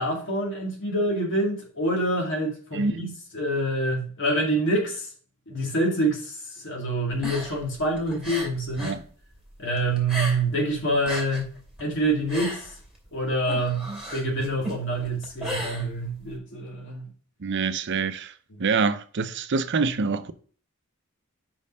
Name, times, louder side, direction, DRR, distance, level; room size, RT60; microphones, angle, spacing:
voice 1, 0.0-3.1 3.3-5.1 5.5-6.3 6.6-8.9 9.6-11.5 11.8-12.6 13.1-17.1, right 1 dB, 60° left, 2.2 m, -26 dB
sound 1, 7.1-9.0 9.3-10.6 10.9-16.4, equal, 5° right, 2.5 m, -35 dB
voice 2, 17.4-18.3 18.6-20.3, right 4 dB, 55° right, 0.6 m, -26 dB
5.4 x 5.3 x 5.4 m
head